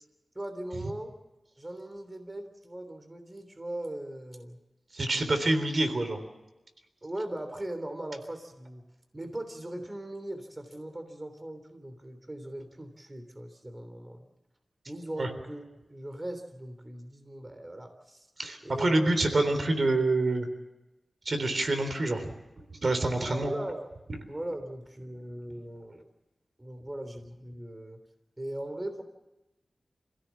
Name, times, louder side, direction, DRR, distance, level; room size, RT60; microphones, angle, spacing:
voice 1, 0.3-1.1 1.6-4.6 7.0-8.8 9.1-14.3 14.9-15.6 15.9-18.3 18.6-19.1 23.2-23.9 24.3-26.1 26.6-28.0 28.4-29.0, right 1 dB, 20° right, 7 dB, 3.2 m, -39 dB
voice 2, 4.9-6.2 15.2-15.3 18.4-20.5 21.3-22.3 22.8-23.5, right 2 dB, 55° right, 7 dB, 3.6 m, -26 dB
27.0 x 16.5 x 7.1 m, 1.0 s
wide cardioid pair, 75°, 0 cm